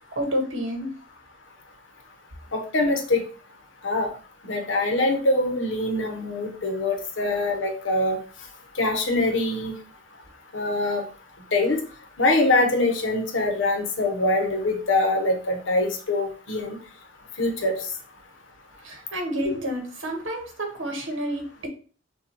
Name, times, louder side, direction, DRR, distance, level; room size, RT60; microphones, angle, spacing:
voice 1, 0.1-0.9 18.8-21.7, equal, 75° right, 2 dB, 1.5 m, -29 dB
voice 2, 2.5-3.2 3.8-4.1 4.4-8.2 8.7-9.7 10.5-11.0 11.5-11.8 12.2-16.8 17.4-17.8 19.4-19.6, left 2 dB, 65° left, 3 dB, 1.0 m, -23 dB
6.4 x 2.5 x 3.0 m, 0.39 s
head